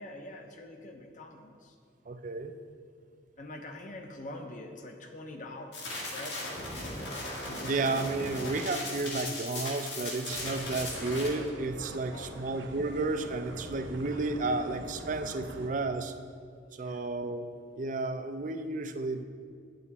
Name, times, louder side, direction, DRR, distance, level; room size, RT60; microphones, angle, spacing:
voice 1, 0.0-1.7 3.4-6.4 12.1-12.5 16.8-17.1, left 1 dB, 45° left, 4 dB, 0.8 m, -45 dB
voice 2, 2.1-2.5 7.1-16.1 16.7-17.5 17.8-19.3, right 3 dB, 45° right, 9 dB, 0.5 m, -32 dB
sound 1, 5.7-11.3, left 2 dB, 75° left, 2.1 m, -37 dB
sound 2, 10.3-15.7, right 1 dB, 75° right, 0.7 m, -44 dB
8.7 x 8.0 x 4.1 m, 2.2 s
head